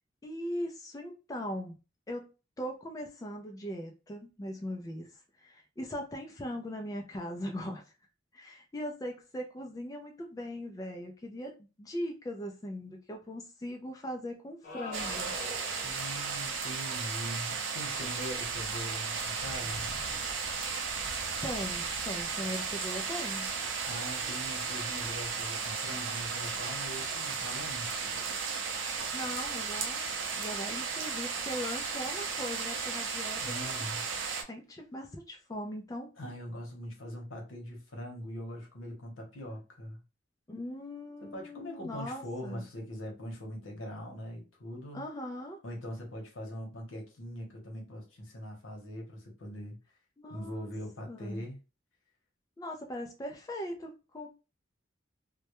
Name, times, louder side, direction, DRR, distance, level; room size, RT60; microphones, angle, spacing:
voice 1, 0.2-1.8 2.1-2.3 2.6-5.1 5.4-7.8 8.3-15.3 21.4-23.5 28.9-33.8 34.5-36.1 40.5-42.6 44.9-45.6 50.2-50.7 51.1-51.4 52.6-54.3, equal, 20° left, 0.3 m, -40 dB
sound 1, 14.6-16.0, left 1 dB, 40° left, 0.8 m, -42 dB
sound 2, 14.9-34.4, right 5 dB, 70° right, 0.5 m, -35 dB
voice 2, 15.8-20.1 23.8-28.3 33.4-34.0 36.2-40.0 41.2-45.0 45.6-49.8 50.3-51.6, equal, 90° left, 0.8 m, -42 dB
2.2 x 2.1 x 2.9 m
head